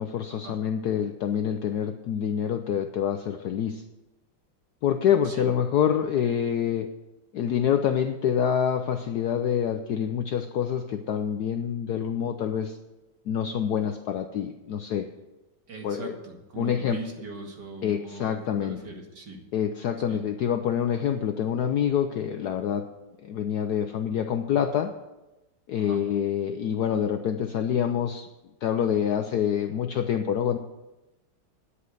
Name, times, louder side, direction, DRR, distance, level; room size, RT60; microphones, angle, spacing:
voice 1, 0.0-3.8 4.8-6.9 7.3-12.8 13.3-15.1 15.8-16.1 16.6-17.0 17.8-18.8 19.5-22.8 23.2-24.9 25.7-28.3 28.6-30.6, left 8 dB, 70° left, 7 dB, 0.9 m, -26 dB
voice 2, 15.7-19.4 20.1-20.2 25.8-26.0, right 3 dB, 55° right, 2 dB, 2.4 m, -40 dB
9.8 x 8.5 x 7.8 m, 1.0 s
omnidirectional pair, 2.3 m